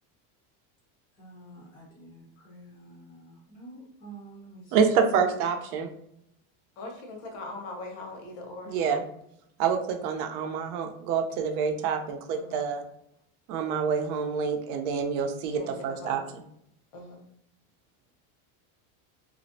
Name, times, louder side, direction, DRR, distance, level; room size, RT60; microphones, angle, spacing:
voice 1, 1.2-4.7, right 2 dB, 15° left, -5 dB, 0.4 m, -48 dB
voice 2, 4.7-5.9 8.7-9.0 9.6-12.8 13.5-16.2, right 6 dB, 90° right, 5 dB, 0.6 m, -27 dB
voice 3, 6.8-8.8 12.3-12.6 15.5-16.3 16.9-17.3, left 2 dB, 80° left, 1 dB, 0.9 m, -41 dB
2.5 x 2.0 x 2.6 m, 0.73 s
cardioid pair, 150°, 42 cm